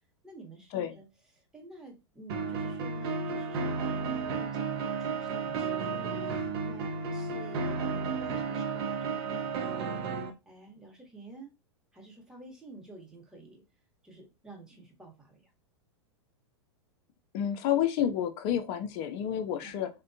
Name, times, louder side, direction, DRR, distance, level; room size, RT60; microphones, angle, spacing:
voice 1, 0.2-1.1 1.3-10.0 10.5-11.5 11.9-13.6 14.0-15.5 19.6-19.8, right 2 dB, 5° right, 1.0 m, -50 dB
sound 1, 2.3-10.3, right 4 dB, 55° right, 0.7 m, -33 dB
voice 2, 17.3-19.9, left 10 dB, 45° left, 0.6 m, -29 dB
3.4 x 2.2 x 2.6 m
hypercardioid pair, 100°, 15 cm